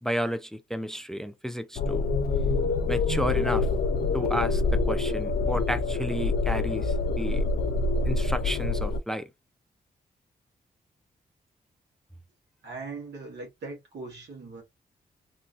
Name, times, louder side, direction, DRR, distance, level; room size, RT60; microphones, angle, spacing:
voice 1, 0.0-2.1 2.9-3.7 4.1-7.4 8.0-9.3, equal, 5° left, 0.5 m, -32 dB
sound 1, 1.7-9.0, left 3 dB, 65° left, 0.6 m, -26 dB
voice 2, 12.6-14.6, right 3 dB, 90° right, 1.5 m, -40 dB
3.0 x 2.6 x 2.4 m
cardioid pair, 55°, 17 cm